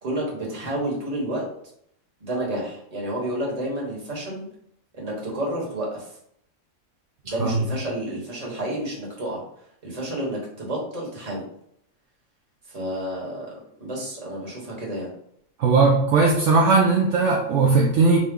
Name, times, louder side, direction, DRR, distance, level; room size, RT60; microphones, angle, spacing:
voice 1, 0.0-1.4 2.2-4.5 4.9-6.2 7.2-9.4 9.8-11.4 12.7-13.5 13.8-15.1, right 1 dB, 30° right, -4 dB, 1.2 m, -30 dB
voice 2, 15.6-18.2, right 4 dB, 65° right, -1 dB, 0.9 m, -18 dB
3.8 x 2.2 x 3.6 m, 0.71 s
omnidirectional pair, 1.4 m